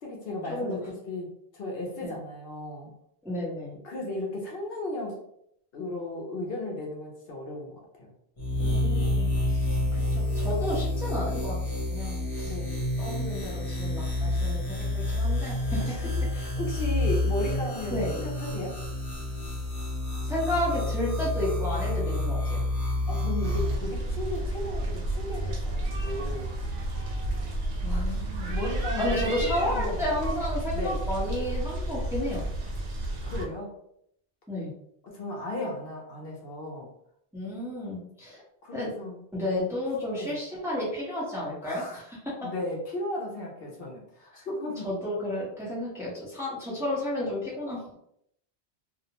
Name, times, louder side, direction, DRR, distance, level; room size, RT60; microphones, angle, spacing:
voice 1, 0.0-2.9 3.8-5.2 5.7-8.1 9.5-9.8 12.4-12.7 15.8-18.7 23.1-26.5 27.8-29.1 29.4-30.0 30.7-31.0 33.3-33.7 35.1-36.9 38.6-39.2 40.1-40.4 41.6-42.0 42.4-44.9, left 1 dB, 65° left, -1 dB, 0.8 m, -35 dB
voice 2, 3.2-3.7 8.6-9.3 9.9-11.6 11.9-12.5 13.0-15.8 17.9-18.1 20.2-22.6 27.8-28.5 29.0-32.4 34.5-34.7 37.3-38.4 38.7-38.9 39.3-42.5 44.8-47.9, left 1 dB, 5° right, -7 dB, 0.7 m, -32 dB
sound 1, 8.4-23.7, left 1 dB, 40° left, 0.7 m, -29 dB
sound 2, 23.4-33.4, right 1 dB, 90° right, 0.9 m, -31 dB
2.4 x 2.0 x 2.8 m, 0.73 s
omnidirectional pair, 1.1 m